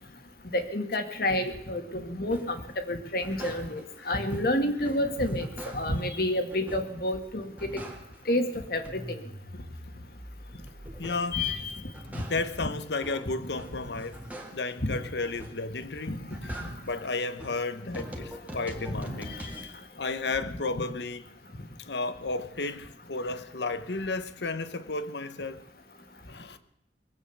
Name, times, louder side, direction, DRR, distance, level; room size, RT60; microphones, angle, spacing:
voice 1, 0.5-5.5 5.7-7.8 8.3-9.2 11.3-11.8 12.6-12.7 14.8-15.0 16.1-16.2 19.3-19.5, left 1 dB, 55° left, 1.9 m, -29 dB
sound 1, 2.3-2.6 3.0-4.0 4.3-6.1 6.5-7.1 7.4-8.4 8.7-11.4 11.8-14.8 15.2-15.8 16.1-19.7, equal, 10° right, 1.8 m, -43 dB
voice 2, 11.0-11.5 12.3-14.3 14.5-19.4 20.0-21.2 21.8-25.6 26.3-26.6, left 3 dB, 75° left, 1.0 m, -33 dB
21.0 x 8.9 x 7.1 m
head